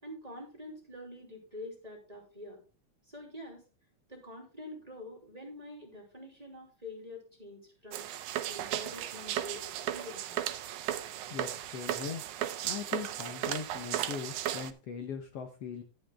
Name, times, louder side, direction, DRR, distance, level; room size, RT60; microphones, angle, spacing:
voice 1, 0.0-2.6 3.1-3.6 4.1-8.1 8.5-9.7 9.9-10.4, left 1 dB, 15° right, 0 dB, 2.8 m, -46 dB
sound 1, 7.9-14.7, right 12 dB, 85° right, 2.2 m, -35 dB
voice 2, 11.3-12.2 12.6-15.8, left 7 dB, 60° left, 5 dB, 1.9 m, -40 dB
11.5 x 9.1 x 3.5 m, 0.33 s
omnidirectional pair, 3.4 m